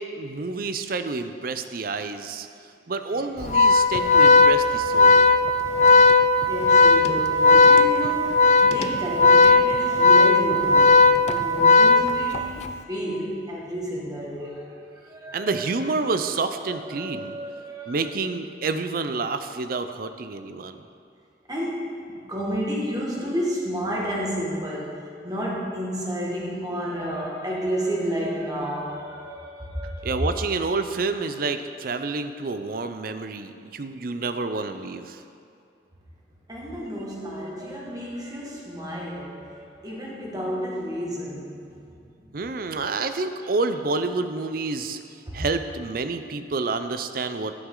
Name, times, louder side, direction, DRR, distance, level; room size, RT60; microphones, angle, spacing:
voice 1, 0.0-2.5 2.9-5.3 15.3-17.4 17.9-20.8 30.0-35.2 42.3-45.0 45.3-47.5, right 3 dB, 55° right, 9 dB, 0.5 m, -28 dB
Organ, 3.4-12.6, left 3 dB, 40° left, 0.4 m, -16 dB
voice 2, 6.5-15.7 16.6-18.0 21.5-30.4 36.5-42.3 45.3-45.4, equal, 20° right, -4 dB, 1.8 m, -31 dB
11.0 x 9.3 x 3.8 m, 2.6 s
head